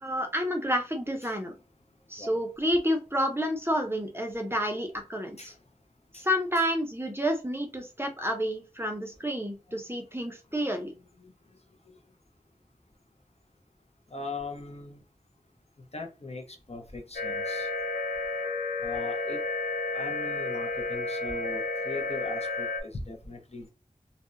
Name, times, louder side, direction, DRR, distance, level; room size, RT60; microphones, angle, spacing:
voice 1, 0.0-1.6 2.1-5.5 6.1-10.9, equal, 15° right, 4 dB, 0.5 m, -29 dB
voice 2, 14.1-15.0 15.9-17.7 18.8-19.4 19.9-23.7, left 3 dB, 45° left, 2 dB, 0.6 m, -39 dB
sound 1, 17.1-22.8, left 3 dB, 90° left, 0.6 m, -31 dB
2.7 x 2.0 x 2.5 m, 0.30 s
wide cardioid pair, 50°, 15 cm